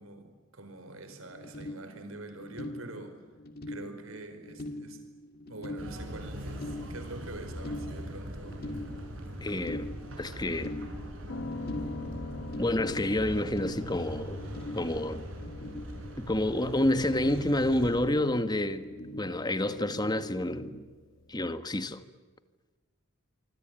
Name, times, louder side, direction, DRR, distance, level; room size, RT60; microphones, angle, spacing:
voice 1, 0.0-3.2 3.7-5.0 5.4-8.6, right 2 dB, 85° right, 4.9 m, -45 dB
sound 1, 1.3-20.8, left 1 dB, 50° left, 2.3 m, -43 dB
sound 2, 5.8-18.1, equal, 70° right, 7.6 m, -42 dB
voice 2, 9.4-9.9 10.2-10.7 12.6-14.4 14.7-15.2 16.2-18.9 19.2-20.7 21.3-22.0, left 1 dB, 20° left, 1.6 m, -28 dB
Piano, 11.3-21.4, left 2 dB, 70° left, 1.3 m, -45 dB
25.5 x 25.5 x 9.1 m
head